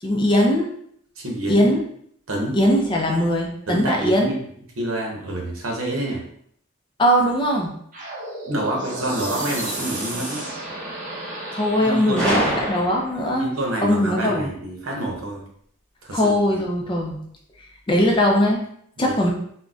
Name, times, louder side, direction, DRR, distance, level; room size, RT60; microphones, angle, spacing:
voice 1, 0.0-0.7 1.5-1.8 2.5-4.3 7.0-7.7 11.5-13.4 13.8-14.5 16.1-17.2 17.9-18.6 19.0-19.3, equal, 25° left, 0 dB, 0.4 m, -20 dB
voice 2, 1.2-1.7 2.3-2.6 3.7-4.4 4.8-6.2 8.5-10.4 11.8-12.6 13.3-15.4 16.0-16.4 19.0-19.3, right 1 dB, 85° right, -1 dB, 0.8 m, -27 dB
sound 1, 7.9-13.0, right 1 dB, 40° right, 0.7 m, -32 dB
Gunshot gunfire, 12.2-13.4, equal, 5° left, 1.1 m, -25 dB
3.8 x 2.1 x 2.3 m, 0.67 s
head